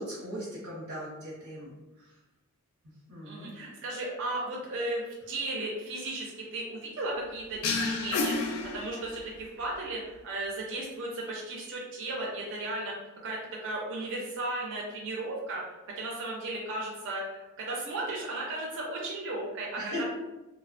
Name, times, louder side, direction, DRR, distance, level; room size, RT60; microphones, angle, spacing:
voice 1, 0.0-1.7 3.1-3.5 19.8-20.0, equal, 90° right, -7 dB, 0.9 m, -38 dB
voice 2, 3.2-15.6 16.0-20.0, right 2 dB, 55° right, -3 dB, 0.5 m, -35 dB
sound 1, 7.6-9.4, left 4 dB, 70° left, 0.3 m, -30 dB
2.9 x 2.1 x 2.4 m, 1.0 s
head